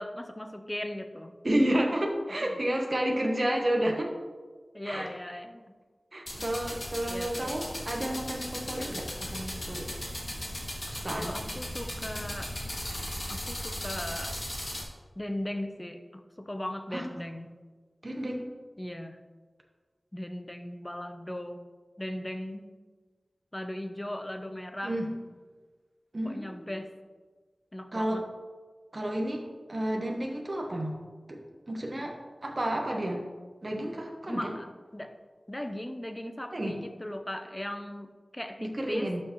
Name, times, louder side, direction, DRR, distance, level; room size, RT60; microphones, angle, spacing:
voice 1, 0.0-1.3 2.4-2.6 4.7-5.7 7.1-7.6 11.1-12.6 13.3-14.4 15.2-17.6 18.8-19.2 20.1-21.6 22.0-22.7 23.5-25.0 26.2-26.9 27.7-28.3 34.3-35.1 35.5-39.1, left 1 dB, 20° left, 7 dB, 0.8 m, -38 dB
voice 2, 1.4-4.1 4.8-5.1 6.1-9.9 10.9-11.3 16.9-17.1 18.0-18.5 24.8-25.1 26.1-26.7 27.9-28.2 28.9-30.9 31.3-31.4 31.7-33.2 33.6-34.5 36.5-36.8 38.6-39.2, right 1 dB, 40° right, 1 dB, 1.1 m, -31 dB
sound 1, 6.3-14.8, left 1 dB, 45° left, 2.2 m, -37 dB
12.0 x 6.4 x 3.1 m, 1.4 s
wide cardioid pair, 60°, 0 cm